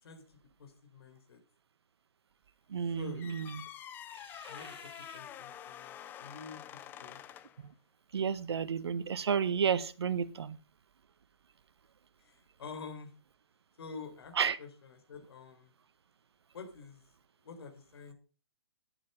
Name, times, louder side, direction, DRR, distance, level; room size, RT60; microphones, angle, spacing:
voice 1, 0.0-1.4 2.9-3.3 4.5-7.2 12.2-13.1 13.8-15.7 16.5-17.0 17.4-18.1, left 5 dB, 60° left, 4 dB, 4.0 m, -48 dB
voice 2, 2.7-3.5 4.4-4.5 7.6-7.7 8.1-10.6 14.4-14.6, right 7 dB, 70° right, 14 dB, 1.2 m, -31 dB
sound 1, 3.2-7.6, left 10 dB, 15° left, 0.5 m, -47 dB
10.0 x 9.6 x 5.4 m, 0.35 s
hypercardioid pair, 140°, 14 cm